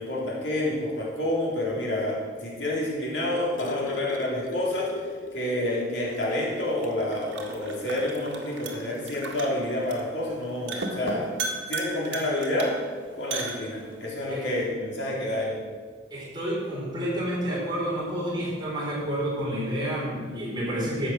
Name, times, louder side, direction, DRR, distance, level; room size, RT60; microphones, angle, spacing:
voice 1, 0.0-4.9 5.3-11.3 11.7-12.8 13.2-15.6, left 1 dB, 75° left, -4 dB, 3.4 m, -28 dB
sound 1, 3.0-5.9 6.3-6.4 6.8-7.0 8.1-8.2, left 3 dB, 45° left, 0.8 m, -38 dB
sound 2, 6.1-14.1, right 3 dB, 75° right, 1.8 m, -37 dB
voice 2, 16.1-21.1, equal, 25° right, -5 dB, 4.1 m, -29 dB
12.5 x 7.8 x 6.3 m, 1.5 s
head